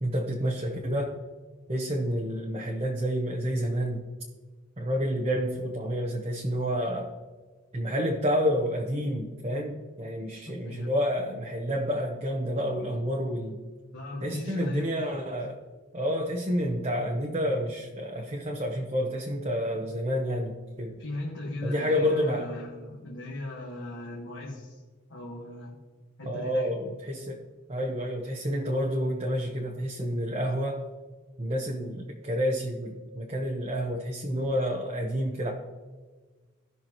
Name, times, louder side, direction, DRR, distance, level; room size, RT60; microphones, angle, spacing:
voice 1, 0.0-1.2 1.7-4.0 4.8-7.1 7.7-13.6 14.2-15.6 15.9-21.0 21.6-22.5 26.2-27.4 27.7-30.8 31.4-35.5, equal, 30° right, 0 dB, 0.9 m, -29 dB
voice 2, 13.9-15.0 21.0-24.8 25.1-25.8 26.2-26.7, left 2 dB, 65° left, -3 dB, 1.5 m, -38 dB
17.0 x 6.0 x 3.0 m, 1.4 s
head